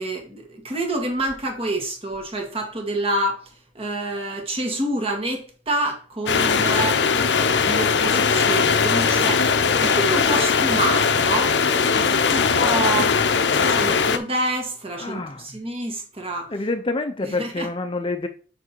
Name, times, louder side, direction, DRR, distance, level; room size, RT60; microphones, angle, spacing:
voice 1, 0.0-3.4 3.8-7.0 7.6-9.4 9.8-11.6 12.0-13.1 13.7-16.5 17.2-17.7, right 1 dB, 35° right, 1.9 m, -27 dB
sound 1, 6.3-14.2, left 5 dB, 80° left, 0.7 m, -19 dB
voice 2, 15.0-15.5 16.5-18.3, left 2 dB, 30° left, 0.6 m, -27 dB
6.2 x 5.4 x 4.5 m
head